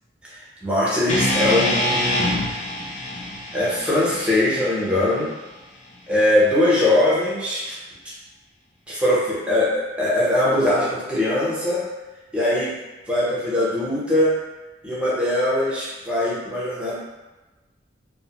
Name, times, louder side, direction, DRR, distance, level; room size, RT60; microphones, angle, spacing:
voice 1, 0.3-2.4 3.5-5.3 6.1-7.6 8.9-11.8 12.3-12.7 13.1-14.3 14.8-16.9, left 1 dB, 5° right, -8 dB, 0.7 m, -21 dB
sound 1, 1.1-5.3, left 1 dB, 40° left, 0.4 m, -25 dB
2.6 x 2.0 x 2.8 m, 1.1 s
head